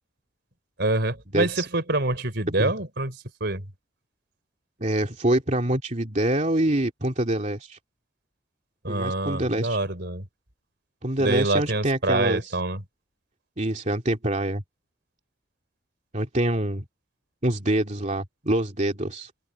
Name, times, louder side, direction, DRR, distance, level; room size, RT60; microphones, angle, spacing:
voice 1, 0.8-3.7 8.8-10.2 11.2-12.8, right 2 dB, 55° right, 3.9 m, -26 dB
voice 2, 1.3-1.7 2.6-2.7 4.8-7.8 8.9-9.8 11.0-12.4 13.6-14.6 16.1-16.8 17.4-19.3, right 1 dB, 35° right, 2.7 m, -25 dB
head